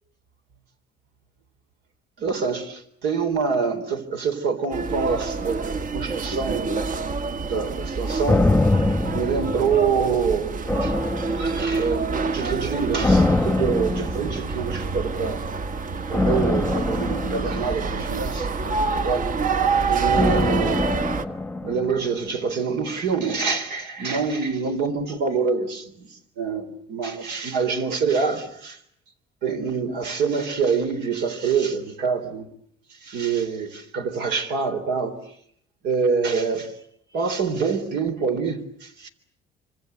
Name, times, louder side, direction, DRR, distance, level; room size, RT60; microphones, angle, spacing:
voice 1, 2.2-6.7 7.4-8.5 9.1-11.0 11.4-15.4 16.1-18.5 18.9-19.3 19.9-20.9 21.6-28.8 29.4-32.5 33.0-35.2 35.8-36.7 37.1-39.1, right 5 dB, 80° right, 3.8 m, -26 dB
sound 1, 4.7-21.3, right 4 dB, 50° right, 1.6 m, -27 dB
sound 2, 8.3-10.2 10.7-11.9 13.0-14.7 16.1-18.5 20.1-22.3 22.6-22.7, left 2 dB, 5° left, 1.0 m, -24 dB
26.0 x 25.5 x 8.1 m
cardioid pair, 110°, 17 cm